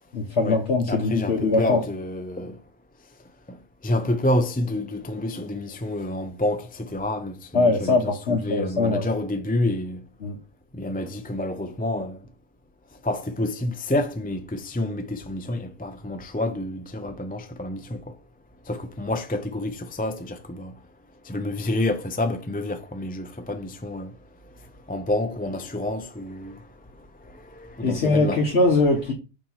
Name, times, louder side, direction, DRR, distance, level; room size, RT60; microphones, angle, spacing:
voice 1, 0.1-1.8 7.5-9.1 10.2-10.4 27.8-29.1, left 3 dB, 70° left, 1.5 m, -22 dB
voice 2, 0.9-2.6 3.5-10.1 10.7-12.3 13.0-18.2 18.6-20.8 21.2-24.2 24.9-26.7 27.0-28.4, left 1 dB, 15° left, 0.4 m, -28 dB
7.0 x 3.0 x 5.6 m
omnidirectional pair, 1.2 m